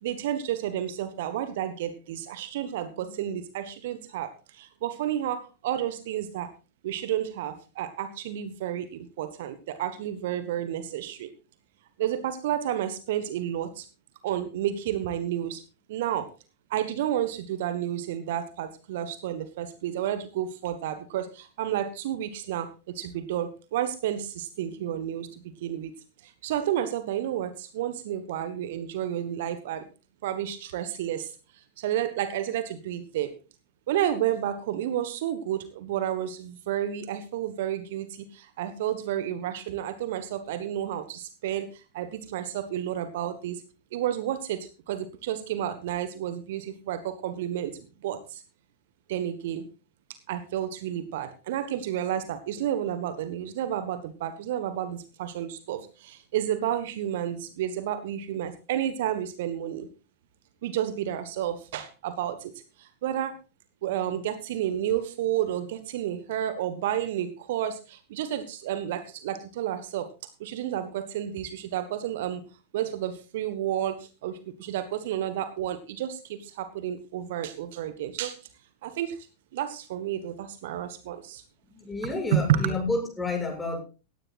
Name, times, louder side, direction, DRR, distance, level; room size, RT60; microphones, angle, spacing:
voice 1, 0.0-6.5 6.8-11.3 12.0-13.9 14.2-15.6 15.9-16.3 16.7-25.9 26.2-29.9 30.2-33.3 33.9-43.6 43.9-48.4 49.1-49.7 50.3-59.9 60.6-63.4 63.8-70.1 70.4-72.4 72.7-78.4 78.8-79.3 79.5-81.4 82.0-82.7, right 11 dB, 55° right, 12 dB, 1.4 m, -31 dB
voice 2, 81.7-83.8, left 3 dB, 10° left, 1 dB, 7.4 m, -30 dB
17.0 x 16.0 x 2.5 m, 0.33 s
figure-of-eight pair, 90°, 0 cm